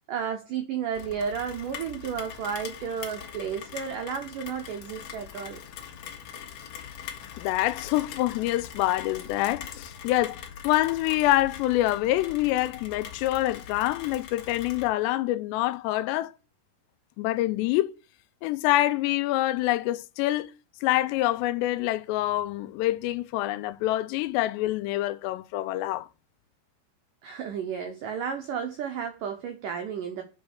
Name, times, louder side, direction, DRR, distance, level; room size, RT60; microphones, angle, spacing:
voice 1, 0.1-5.6 27.2-30.2, right 7 dB, 85° right, 1.9 m, -32 dB
Rain, 0.9-14.9, left 8 dB, 65° left, 2.2 m, -42 dB
voice 2, 7.4-16.3 17.2-17.9 18.4-20.5 20.8-26.1, left 16 dB, 80° left, 2.6 m, -26 dB
7.3 x 5.2 x 6.5 m
omnidirectional pair, 5.1 m